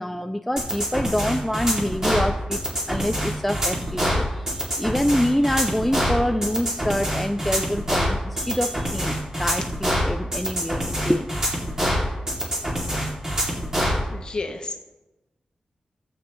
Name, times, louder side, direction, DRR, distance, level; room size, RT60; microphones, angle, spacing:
voice 1, 0.0-2.6 2.9-11.3, equal, 5° left, 6 dB, 0.3 m, -26 dB
sound 1, 0.6-14.0, equal, 25° right, 2.4 m, -25 dB
voice 2, 14.1-14.8, left 3 dB, 40° left, 4 dB, 1.2 m, -31 dB
17.0 x 7.9 x 3.1 m, 1.0 s
wide cardioid pair, 165°, 2 cm